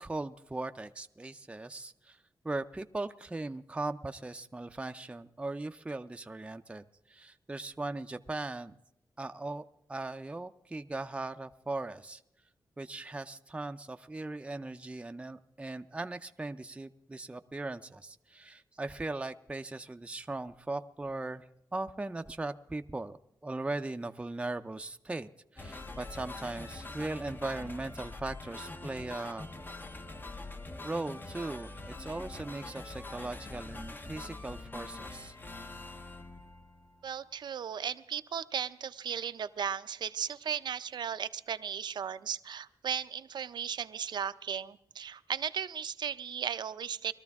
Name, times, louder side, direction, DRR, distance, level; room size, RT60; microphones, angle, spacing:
voice 1, 0.0-2.2 2.4-8.7 9.2-12.2 12.8-21.5 21.7-29.5 30.8-35.3, right 2 dB, 15° right, 7 dB, 0.5 m, -39 dB
sound 1, 25.6-37.2, left 2 dB, 25° left, 0.8 m, -44 dB
voice 2, 37.0-47.1, right 8 dB, 85° right, 12 dB, 0.6 m, -36 dB
21.5 x 13.5 x 3.6 m, 0.80 s
wide cardioid pair, 105°, 7 cm